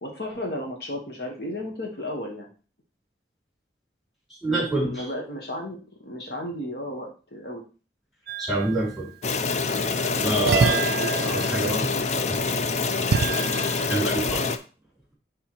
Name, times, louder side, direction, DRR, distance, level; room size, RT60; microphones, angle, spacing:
voice 1, 0.0-2.5 4.4-5.8 6.0-7.6 10.4-11.1 13.3-13.6, left 1 dB, 65° left, 1 dB, 1.3 m, -34 dB
voice 2, 4.4-5.1 8.4-9.1 10.2-10.8 11.2-11.9 12.3-12.4 13.9-14.4, right 1 dB, ahead, -4 dB, 2.8 m, -26 dB
sound 1, 8.3-9.0 10.5-14.1, right 6 dB, 60° right, 0.3 m, -28 dB
sound 2, 9.2-14.6, left 4 dB, 40° left, 0.5 m, -26 dB
10.0 x 3.4 x 3.0 m, 0.35 s
head